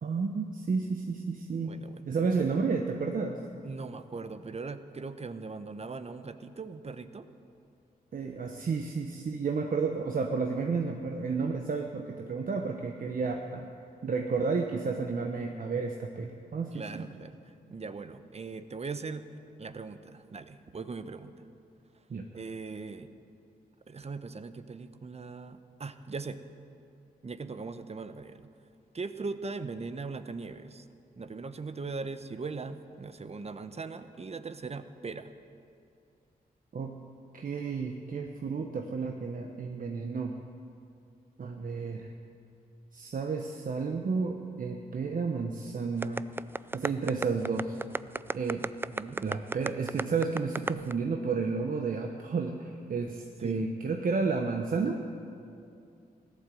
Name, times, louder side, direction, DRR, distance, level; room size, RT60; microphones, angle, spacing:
voice 1, 0.0-1.8 2.1-3.4 8.1-13.7 14.0-17.0 22.1-22.3 36.7-37.0 37.3-40.4 41.4-42.1 42.9-46.3 46.7-47.8 48.3-48.7 49.2-55.0, right 4 dB, 60° right, 3 dB, 1.1 m, -31 dB
voice 2, 1.6-2.1 3.6-7.3 16.7-19.3 19.6-21.5 22.3-23.1 23.9-26.4 27.2-28.5 28.9-30.9 31.2-35.3 48.9-49.2 53.4-53.6, right 4 dB, 40° right, 10 dB, 0.9 m, -40 dB
sound 1, 46.0-50.9, right 2 dB, 15° right, 0.3 m, -32 dB
16.0 x 11.5 x 7.7 m, 2.6 s
cardioid pair, 65°, 16 cm